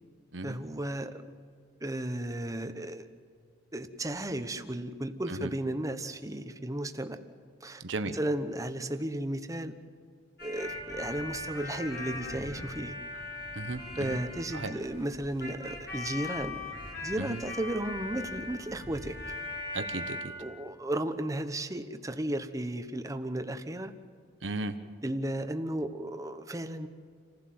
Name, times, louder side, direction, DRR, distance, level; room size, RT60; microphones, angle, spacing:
voice 1, 0.4-1.2 1.8-3.0 3.7-7.2 7.6-9.7 10.4-12.9 14.0-16.6 17.0-19.2 20.4-23.9 25.0-26.9, right 1 dB, 20° right, 9 dB, 1.1 m, -34 dB
voice 2, 7.8-8.2 13.6-14.2 14.5-14.7 17.2-17.4 19.7-20.2 24.4-24.7, right 2 dB, 85° right, 9 dB, 1.1 m, -35 dB
sound 1, 10.4-20.2, left 2 dB, 60° left, 6.3 m, -39 dB
28.0 x 15.5 x 7.7 m, 2.2 s
head